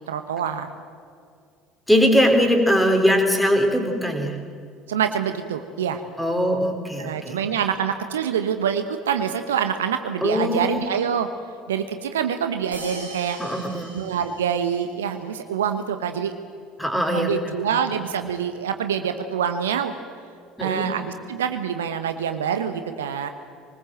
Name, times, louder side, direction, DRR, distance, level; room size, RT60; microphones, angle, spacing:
voice 1, 0.1-0.7 4.9-6.0 7.0-11.3 11.7-13.4 13.9-16.3 17.1-19.9 20.6-23.3, right 8 dB, 70° right, 8 dB, 1.2 m, -26 dB
voice 2, 1.9-4.4 6.2-7.4 10.2-10.9 13.4-13.9 16.8-17.6 20.6-20.9, equal, 5° left, 4 dB, 4.1 m, -21 dB
sound 1, 12.7-15.0, right 1 dB, 90° right, 3.1 m, -40 dB
23.5 x 20.0 x 7.7 m, 2.2 s
figure-of-eight pair, 60°, 0 cm